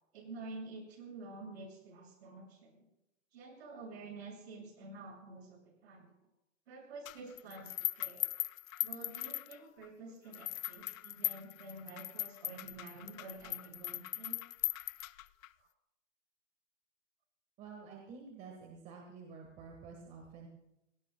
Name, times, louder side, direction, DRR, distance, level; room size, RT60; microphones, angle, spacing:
voice 1, 0.1-2.8 3.3-6.1 6.7-8.3 8.8-14.4 15.6-15.7, right 3 dB, 50° right, 0 dB, 6.6 m, -49 dB
sound 1, 7.0-9.9 10.3-15.5, left 13 dB, 80° left, 0.6 m, -39 dB
voice 2, 17.6-20.5, right 5 dB, 20° right, 1 dB, 1.5 m, -50 dB
29.0 x 18.0 x 2.2 m, 0.86 s
hypercardioid pair, 165°, 40 cm